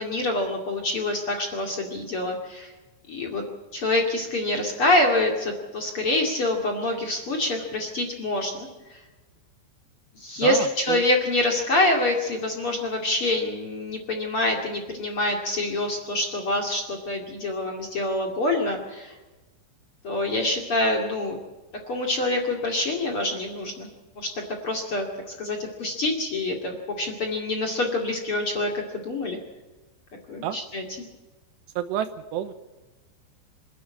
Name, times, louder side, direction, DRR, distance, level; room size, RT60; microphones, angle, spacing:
voice 1, 0.0-2.7 3.1-3.4 3.7-9.0 10.2-19.1 20.0-21.4 21.9-23.9 24.2-29.4 30.3-30.8, left 2 dB, 40° left, 2 dB, 2.4 m, -26 dB
voice 2, 10.4-11.0 30.4-30.6 31.8-32.5, right 10 dB, 80° right, 11 dB, 3.0 m, -29 dB
26.5 x 11.5 x 8.6 m, 1.2 s
omnidirectional pair, 5.2 m